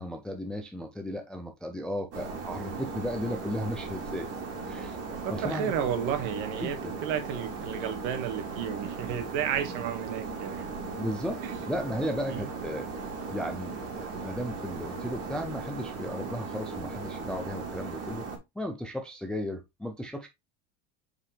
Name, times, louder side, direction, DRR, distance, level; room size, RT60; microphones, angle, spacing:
voice 1, 0.0-4.3 4.7-5.0 5.3-5.7 6.6-6.9 11.0-12.9 13.3-18.2 18.6-20.3, equal, ahead, 0.4 m, -35 dB
sound 1, 2.1-18.4, right 4 dB, 40° right, 2.8 m, -37 dB
voice 2, 5.2-10.6 11.4-11.6 12.3-12.5, right 9 dB, 65° right, 1.8 m, -32 dB
5.9 x 4.9 x 3.3 m
supercardioid pair, 150°, 39 cm